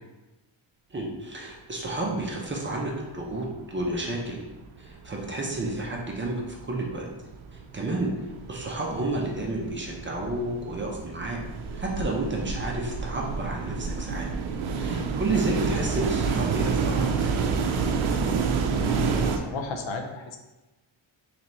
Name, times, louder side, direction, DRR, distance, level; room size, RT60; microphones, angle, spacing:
voice 1, 0.9-4.4 4.8-6.4 6.7-7.1 7.7-11.4 11.7-14.3 14.8-17.6, right 2 dB, 25° right, -2 dB, 0.5 m, -31 dB
sound 1, 3.1-4.1 4.4-19.4, right 5 dB, 75° right, 0.6 m, -29 dB
voice 2, 14.9-15.2 18.8-20.4, left 3 dB, 65° left, 4 dB, 0.6 m, -35 dB
4.0 x 3.3 x 3.0 m, 1.1 s
wide cardioid pair, 160°, 48 cm